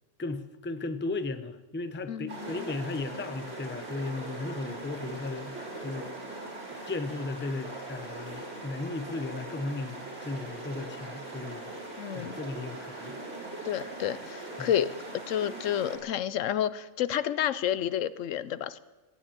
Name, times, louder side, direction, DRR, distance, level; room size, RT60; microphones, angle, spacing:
voice 1, 0.2-5.5 5.8-6.1 6.8-11.7 12.1-13.1 14.6-14.7, left 3 dB, 15° left, 10 dB, 0.5 m, -35 dB
voice 2, 2.1-2.6 12.0-12.4 13.6-14.9 15.3-18.8, left 10 dB, 80° left, 16 dB, 1.0 m, -30 dB
sound 1, 2.3-16.0, right 2 dB, 70° right, 4.1 m, -41 dB
15.0 x 10.5 x 8.8 m, 1.2 s
omnidirectional pair, 1.3 m